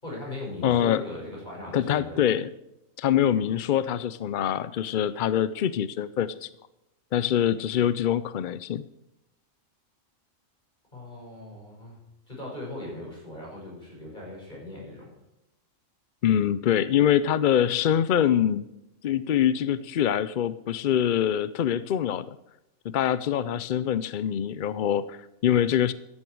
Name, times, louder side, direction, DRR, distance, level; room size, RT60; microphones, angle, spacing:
voice 1, 0.0-2.2 10.9-12.0 12.3-15.1, left 1 dB, 35° left, -3 dB, 6.2 m, -39 dB
voice 2, 0.6-1.0 1.7-2.5 3.0-6.5 7.1-8.8 16.2-18.7 19.0-22.4 22.8-25.9, left 10 dB, 60° left, 15 dB, 0.5 m, -24 dB
14.0 x 11.0 x 4.6 m, 0.89 s
omnidirectional pair, 1.4 m